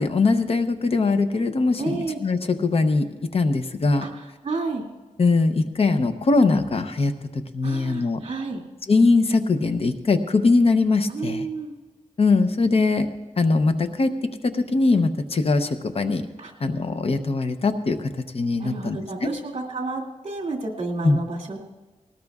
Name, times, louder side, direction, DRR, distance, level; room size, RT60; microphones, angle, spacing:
voice 1, 0.0-3.1 3.3-4.0 5.2-8.2 8.9-11.5 12.2-13.1 13.4-14.1 14.4-16.2 16.6-18.1 18.3-19.3 21.0-21.2, left 3 dB, 50° left, 8 dB, 0.7 m, -21 dB
voice 2, 1.8-2.2 4.0-4.1 4.4-4.9 7.6-8.6 11.1-11.7 16.4-16.5 18.6-21.6, right 3 dB, 55° right, 0 dB, 2.3 m, -30 dB
20.0 x 18.5 x 2.4 m, 1.2 s
wide cardioid pair, 140°, 13 cm